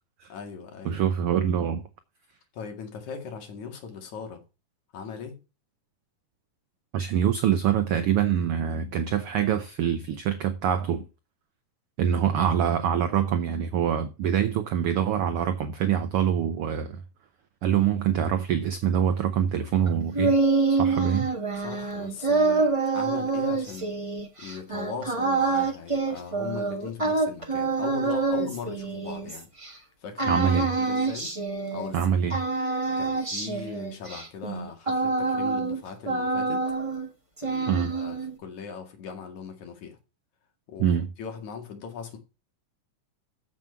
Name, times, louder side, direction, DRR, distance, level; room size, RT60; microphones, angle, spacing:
voice 1, 0.3-1.0 2.5-4.4 4.9-5.3 21.6-23.9 24.4-29.5 30.0-31.3 31.7-32.1 33.0-36.6 37.4-40.0 40.7-40.9 41.2-42.2, left 6 dB, 70° left, 3.4 m, -39 dB
voice 2, 0.8-1.8 6.9-11.0 12.0-17.0 17.6-20.3 20.7-21.3 30.3-30.7 31.9-32.3 37.7-37.9 40.8-41.1, right 9 dB, 85° right, 1.2 m, -25 dB
sound 1, 19.9-29.7 30.2-32.0 32.3-35.8 36.0-37.1 37.4-38.3, right 3 dB, 45° right, 0.4 m, -26 dB
7.5 x 7.4 x 5.7 m
omnidirectional pair, 3.5 m